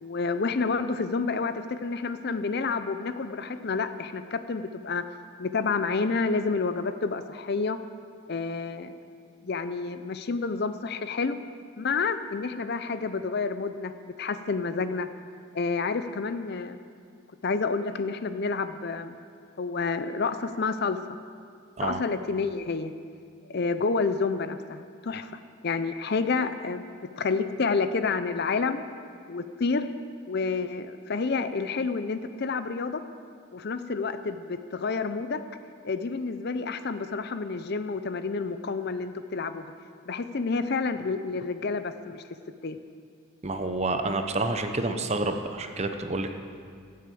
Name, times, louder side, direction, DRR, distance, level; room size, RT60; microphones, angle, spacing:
voice 1, 0.0-5.0 5.4-7.8 8.3-8.9 9.4-11.4 11.8-13.9 14.2-15.1 15.5-16.8 17.4-19.2 19.6-21.0 21.8-22.9 23.5-25.3 25.6-26.9 27.2-28.8 29.3-29.9 30.3-33.0 33.5-35.4 35.8-39.7 40.1-42.2 42.6-42.8, left 4 dB, 50° left, 10 dB, 0.5 m, -29 dB
voice 2, 43.4-46.3, right 2 dB, 30° right, 6 dB, 0.8 m, -29 dB
15.0 x 8.4 x 7.7 m, 2.2 s
head